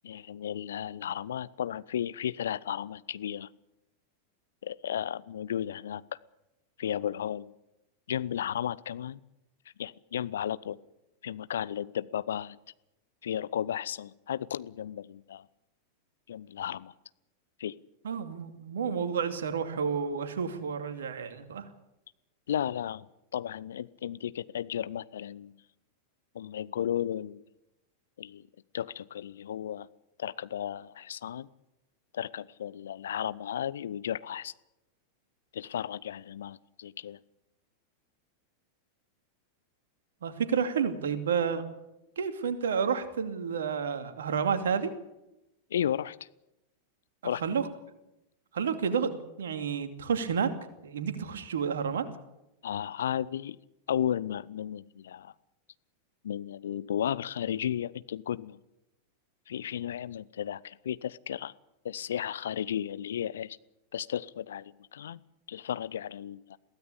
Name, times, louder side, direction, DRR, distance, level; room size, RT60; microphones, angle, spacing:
voice 1, 0.0-3.5 4.6-6.1 6.8-7.5 8.1-9.2 9.8-10.8 11.2-12.6 13.2-15.5 16.3-16.9 17.6-17.8 22.5-23.1 23.3-25.6 26.3-27.4 28.2-28.4 28.7-29.9 30.2-31.5 32.1-34.5 35.5-37.2 45.7-46.3 47.2-47.4 52.6-53.6 53.9-55.3 56.2-58.6 59.5-61.5 61.8-63.6 63.9-65.2 65.5-66.6, left 10 dB, 65° left, 18 dB, 0.7 m, -34 dB
voice 2, 18.0-21.7 40.2-41.6 42.2-44.9 47.2-47.7 48.5-50.5 50.8-52.1, right 6 dB, 65° right, 9 dB, 2.6 m, -30 dB
22.5 x 16.5 x 8.6 m, 0.91 s
figure-of-eight pair, 90°, 0 cm